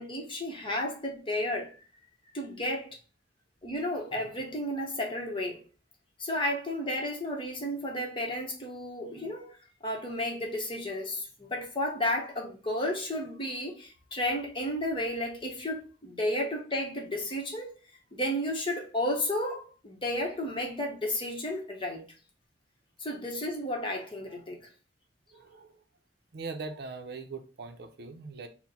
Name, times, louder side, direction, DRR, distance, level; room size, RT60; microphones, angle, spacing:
voice 1, 0.0-1.8 2.3-2.9 3.6-5.6 6.2-9.5 9.8-17.7 18.1-22.0 23.0-24.7, left 1 dB, 30° left, 0.9 m, -32 dB
voice 2, 25.3-25.8 26.3-28.5, right 4 dB, 65° right, 0.6 m, -41 dB
4.2 x 2.1 x 4.1 m
head